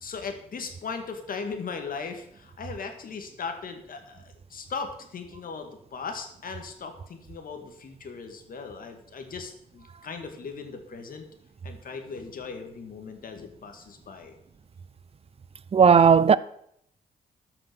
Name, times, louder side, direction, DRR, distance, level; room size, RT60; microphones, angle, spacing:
voice 1, 0.0-11.3 11.6-14.3, left 5 dB, 60° left, 2.1 m, -38 dB
voice 2, 15.7-16.4, right 6 dB, 35° right, 0.6 m, -15 dB
13.0 x 6.0 x 6.2 m
supercardioid pair, 60°, 16 cm